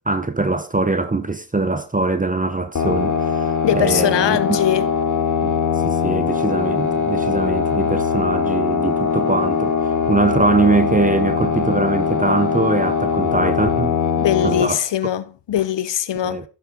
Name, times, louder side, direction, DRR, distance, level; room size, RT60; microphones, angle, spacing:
voice 1, 0.1-4.6 5.4-5.5 5.8-9.7 10.1-14.0 14.4-14.8 16.2-16.4, right 3 dB, 15° right, 1.0 m, -22 dB
sound 1, 2.8-14.6, left 6 dB, 40° left, 1.0 m, -21 dB
voice 2, 3.6-4.9 14.2-16.4, left 11 dB, 65° left, 0.8 m, -21 dB
11.0 x 5.9 x 3.9 m
cardioid pair, 50°, 46 cm